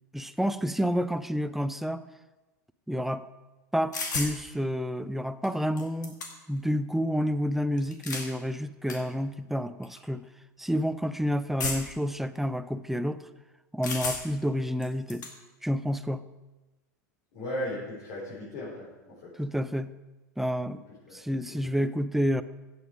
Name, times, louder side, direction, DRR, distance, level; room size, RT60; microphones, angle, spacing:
voice 1, 0.1-2.0 2.9-3.2 3.7-6.1 6.5-10.2 10.6-13.2 13.7-15.2 15.6-16.2 19.4-19.9 20.4-20.8 21.1-22.4, equal, 5° right, 12 dB, 0.6 m, -29 dB
sound 1, 3.9-4.4 5.4-5.5 5.8-6.6 7.8-8.3 8.9-9.0 9.8-10.0 11.6-12.0 13.8-14.4 14.8-15.3, left 3 dB, 80° left, 2.2 m, -33 dB
voice 2, 17.3-19.3 21.1-21.6, left 1 dB, 60° left, -7 dB, 5.2 m, -37 dB
15.5 x 8.5 x 5.1 m, 1.1 s
hypercardioid pair, 90°, 10 cm